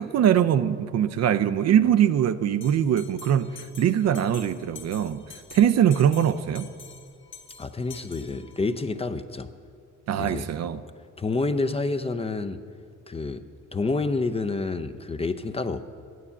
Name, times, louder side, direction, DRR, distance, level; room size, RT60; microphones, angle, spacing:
voice 1, 0.0-5.2 5.5-6.7 10.1-10.8, right 9 dB, 60° right, 11 dB, 0.5 m, -22 dB
Bell, 2.6-8.8, left 6 dB, 40° left, 1.5 m, -47 dB
voice 2, 7.6-9.5 10.2-10.5 11.2-12.6 13.1-13.4 13.7-15.8, left 3 dB, 20° left, 9 dB, 0.5 m, -28 dB
9.8 x 9.4 x 7.0 m, 2.4 s
cardioid pair, 90°, 30 cm